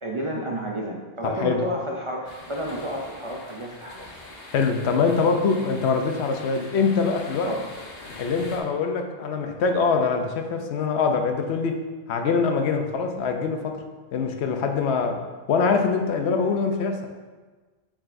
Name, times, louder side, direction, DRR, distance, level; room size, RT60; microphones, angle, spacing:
voice 1, 0.0-4.1 7.5-7.7, equal, 40° right, -1 dB, 0.5 m, -31 dB
voice 2, 1.2-1.7 4.5-7.5 8.2-11.8 12.1-13.8 14.1-15.2 15.5-17.1, left 5 dB, 80° left, 5 dB, 0.9 m, -23 dB
sound 1, 2.2-8.6, left 2 dB, 65° left, 1.2 m, -43 dB
7.2 x 5.0 x 2.6 m, 1.3 s
omnidirectional pair, 1.1 m